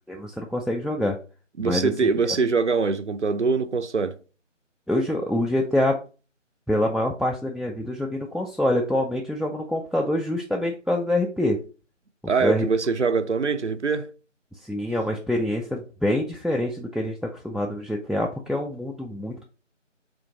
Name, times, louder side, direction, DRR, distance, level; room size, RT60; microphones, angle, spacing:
voice 1, 0.1-1.2 1.6-1.9 4.9-6.0 6.7-11.6 12.4-12.7 14.6-17.2 17.4-19.4, left 1 dB, ahead, 0.3 m, -25 dB
voice 2, 1.6-4.2 12.3-14.1, right 4 dB, 65° right, 0.5 m, -23 dB
3.7 x 2.5 x 3.8 m
figure-of-eight pair, 175°, 38 cm